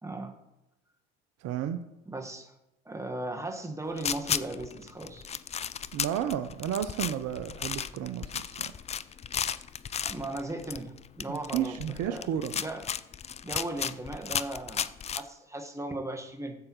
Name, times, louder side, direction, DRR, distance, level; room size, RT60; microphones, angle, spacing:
voice 1, 0.0-0.3 2.0-2.5 2.8-5.3 10.0-12.8 13.4-16.6, right 2 dB, 10° right, 4 dB, 1.5 m, -37 dB
voice 2, 1.4-1.8 5.9-8.7 11.3-12.6, right 10 dB, 55° right, 10 dB, 0.7 m, -32 dB
sound 1, 4.0-15.2, left 8 dB, 20° left, 0.4 m, -34 dB
14.5 x 7.7 x 3.0 m, 0.93 s
hypercardioid pair, 70°, 31 cm